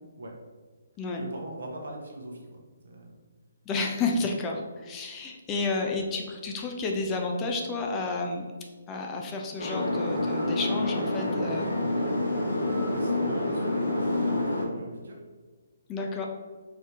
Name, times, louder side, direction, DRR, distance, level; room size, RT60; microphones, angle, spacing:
voice 1, 1.2-3.1 12.9-14.1 14.7-15.2, right 1 dB, 70° right, 0 dB, 1.1 m, -42 dB
voice 2, 3.7-8.5 8.9-11.7 15.9-16.3, left 3 dB, 20° left, 1 dB, 0.5 m, -31 dB
sound 1, 9.6-14.6, left 1 dB, 80° left, 1.5 m, -27 dB
4.6 x 2.9 x 3.5 m, 1.4 s
figure-of-eight pair, 140°, 0 cm